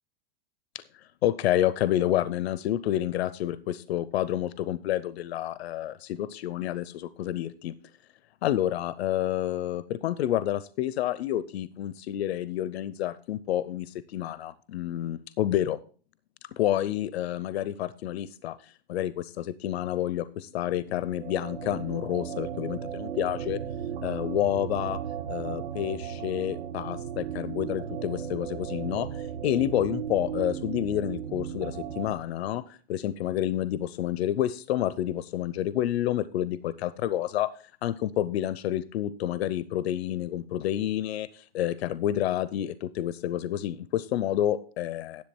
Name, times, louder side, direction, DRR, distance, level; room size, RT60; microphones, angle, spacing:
voice 1, 1.2-7.7 8.4-15.8 16.5-23.6 24.0-25.0 25.3-37.5 37.8-45.2, left 12 dB, 85° left, 16 dB, 0.6 m, -29 dB
sound 1, 20.6-32.1, right 8 dB, 80° right, 1.3 m, -36 dB
10.5 x 7.6 x 4.3 m, 0.41 s
supercardioid pair, 165°, 31 cm